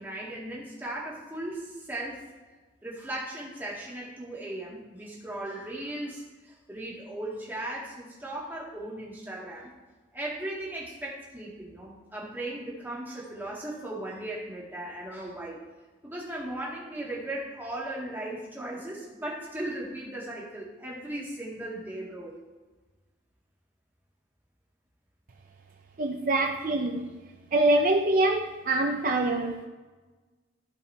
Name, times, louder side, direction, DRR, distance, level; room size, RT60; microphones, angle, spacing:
voice 1, 0.0-2.3 2.8-9.7 10.1-15.6 16.0-22.3, right 1 dB, 10° right, -5 dB, 2.1 m, -37 dB
voice 2, 26.0-27.1 27.5-29.7, right 2 dB, 45° right, 3 dB, 0.5 m, -25 dB
15.0 x 5.5 x 3.4 m, 1.3 s
head